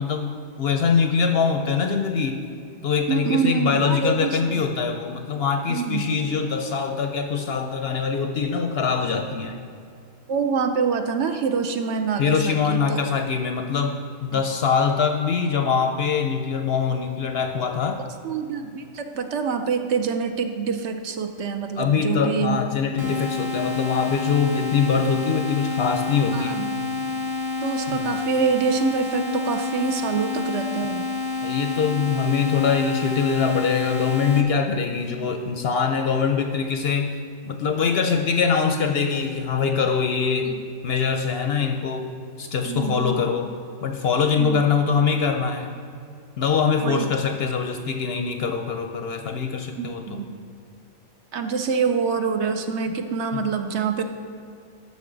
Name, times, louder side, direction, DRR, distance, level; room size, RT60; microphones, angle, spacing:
voice 1, 0.0-2.4 2.8-9.6 12.2-18.0 21.8-26.6 27.9-28.1 31.4-37.1 37.4-40.5 40.8-42.1 42.4-43.5 43.8-45.8 46.4-50.2 52.9-53.0 53.4-53.5, left 6 dB, 60° left, 5 dB, 0.7 m, -23 dB
voice 2, 3.1-4.6 5.7-6.2 10.3-13.0 14.3-14.4 18.2-22.6 26.3-26.8 27.6-31.1 35.0-35.3 40.4-40.6 42.7-43.3 44.4-44.6 46.8-47.2 49.8-50.4 51.3-54.0, right 6 dB, 65° right, 6 dB, 0.8 m, -26 dB
sound 1, 23.0-34.4, left 3 dB, 30° right, 0.4 m, -28 dB
11.5 x 6.6 x 3.9 m, 2.5 s
omnidirectional pair, 1.4 m